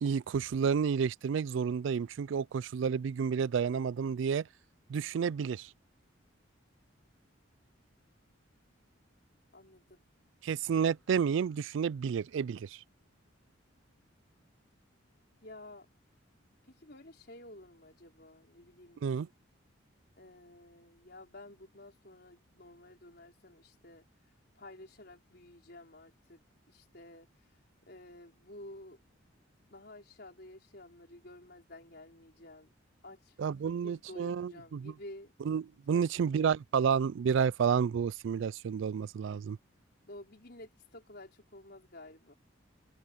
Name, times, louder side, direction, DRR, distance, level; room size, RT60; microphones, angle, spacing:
voice 1, 0.0-4.5 4.9-5.7 10.4-12.8 19.0-19.3 33.4-34.9 35.5-39.6, right 7 dB, 65° right, 0.3 m, -30 dB
voice 2, 9.5-10.0 15.4-15.9 16.7-19.1 20.2-24.1 24.5-26.4 26.7-27.3 27.9-29.0 29.7-32.7 33.0-33.3 33.6-35.3 35.9-36.5 40.1-42.3, left 1 dB, 50° left, 5.0 m, -52 dB
head